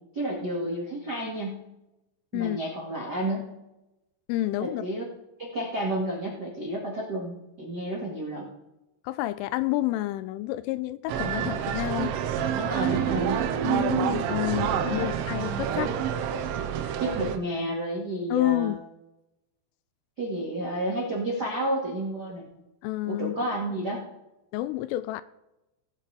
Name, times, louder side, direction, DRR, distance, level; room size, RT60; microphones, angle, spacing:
voice 1, 0.1-1.6 2.3-3.5 4.6-5.0 5.4-8.5 12.5-13.5 14.9-15.1 17.0-18.7 20.2-22.4 23.1-24.0, right 1 dB, 50° right, -4 dB, 1.2 m, -31 dB
voice 2, 4.3-4.8 9.0-12.1 13.6-16.0 18.3-18.8 22.8-23.4 24.5-25.2, left 16 dB, 85° left, 15 dB, 3.0 m, -29 dB
sound 1, 11.1-17.4, right 8 dB, 90° right, 3.6 m, -28 dB
18.5 x 8.9 x 3.5 m, 0.94 s
omnidirectional pair, 5.8 m